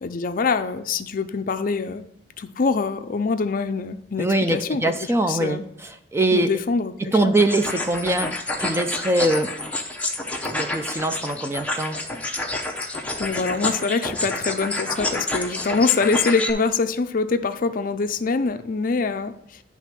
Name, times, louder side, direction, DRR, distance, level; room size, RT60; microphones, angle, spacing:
voice 1, 0.0-2.0 2.4-5.6 6.3-7.4 13.2-19.6, left 4 dB, 50° left, 9 dB, 0.5 m, -24 dB
voice 2, 4.2-6.5 7.0-9.6 10.5-12.0, right 2 dB, 15° right, 8 dB, 0.4 m, -23 dB
sound 1, 7.4-16.5, left 2 dB, 5° left, 0.8 m, -28 dB
10.0 x 3.5 x 5.9 m, 0.73 s
head